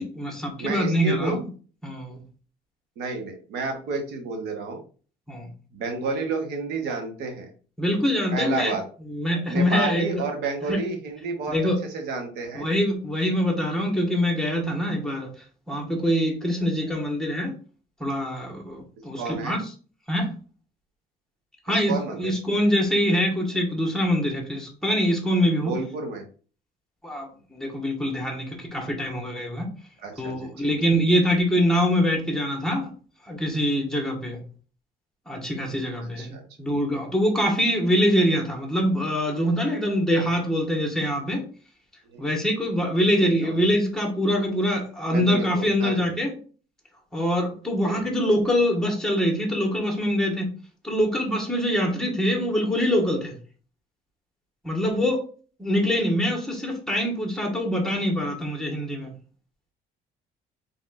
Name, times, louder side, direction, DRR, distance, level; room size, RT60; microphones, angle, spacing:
voice 1, 0.0-1.4 1.8-2.2 5.3-5.5 7.8-8.7 9.1-10.2 10.7-10.8 11.5-11.8 12.5-15.3 15.7-17.5 18.0-19.6 20.1-20.3 21.7-25.7 27.0-29.7 30.2-32.9 33.2-34.4 35.3-41.4 42.2-46.4 47.1-50.5 50.8-53.3 54.6-55.2 55.6-59.1, equal, 5° left, 1 dB, 1.4 m, -24 dB
voice 2, 0.6-1.4 3.0-4.8 5.7-7.5 8.3-8.8 9.5-12.7 19.2-19.6 21.7-22.3 25.6-26.2 30.0-30.7 36.2-36.4 42.1-42.3 43.4-43.7 45.0-46.1 47.8-48.0 54.8-54.9, right 4 dB, 75° right, 3 dB, 1.2 m, -31 dB
4.0 x 3.5 x 2.5 m, 0.39 s
cardioid pair, 110°, 17 cm